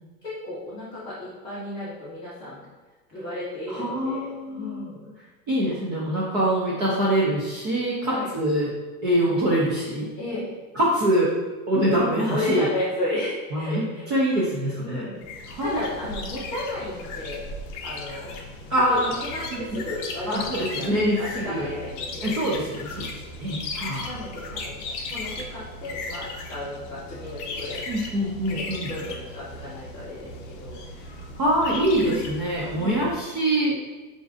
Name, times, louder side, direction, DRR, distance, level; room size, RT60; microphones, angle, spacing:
voice 1, 0.2-2.6 3.1-5.1 8.0-8.3 10.2-10.6 12.3-14.1 14.8-17.5 17.8-18.4 18.9-20.9 21.2-22.4 24.0-27.8 28.5-30.9 32.7-33.1, left 1 dB, 10° left, -14 dB, 0.8 m, -33 dB
voice 2, 3.7-4.9 5.5-8.7 9.0-10.1 10.7-11.3 11.7-12.7 13.5-15.1 15.5-15.8 18.7-19.1 19.5-19.8 20.3-21.7 22.2-23.1 23.4-24.2 27.9-28.9 31.4-33.7, right 1 dB, 25° right, -7 dB, 0.4 m, -24 dB
sound 1, 15.2-33.2, left 3 dB, 50° left, 0.6 m, -36 dB
6.0 x 2.5 x 2.4 m, 1.2 s
supercardioid pair, 165°, 46 cm